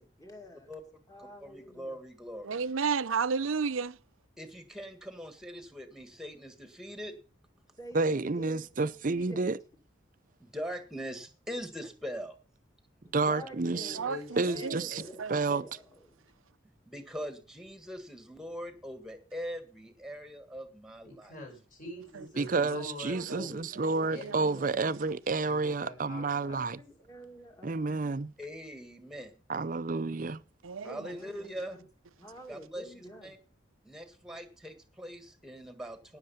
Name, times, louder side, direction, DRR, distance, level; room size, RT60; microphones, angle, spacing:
voice 1, 0.0-0.7 1.1-2.0 7.8-9.4 13.0-14.1 14.4-15.2 15.5-16.2 22.5-22.9 23.2-24.8 25.6-28.2 30.8-31.8 32.2-33.3, equal, 15° left, 2.3 m, -48 dB
voice 2, 1.4-2.4 4.4-7.1 10.4-12.3 16.8-21.4 28.4-29.3 30.8-31.8 32.5-33.4 33.8-36.2, equal, 5° right, 1.7 m, -42 dB
voice 3, 2.5-3.9 13.9-14.2 14.6-14.8 15.2-15.4 23.1-23.2 24.2-24.4 30.6-31.0, right 5 dB, 90° right, 0.6 m, -31 dB
voice 4, 7.9-9.6 13.1-14.0 14.4-15.0 15.3-15.6 22.4-26.8 27.6-28.3 29.5-30.4, right 3 dB, 40° right, 0.5 m, -30 dB
voice 5, 13.7-15.2 21.1-23.5 24.1-24.4 25.4-26.6, left 2 dB, 45° left, 6.0 m, -45 dB
17.5 x 6.7 x 5.6 m
head